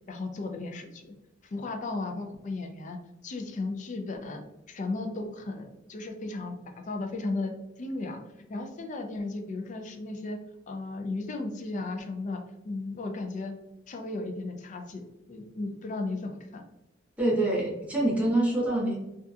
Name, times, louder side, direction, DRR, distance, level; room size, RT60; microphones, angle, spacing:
voice 1, 0.1-1.1 1.4-3.0 3.2-4.4 4.7-6.6 6.9-7.5 7.8-8.2 8.5-10.4 10.7-13.5 13.9-16.6, left 2 dB, 40° left, 5 dB, 0.4 m, -35 dB
voice 2, 17.2-19.0, right 1 dB, 10° right, -4 dB, 0.7 m, -25 dB
2.7 x 2.3 x 2.3 m, 0.92 s
head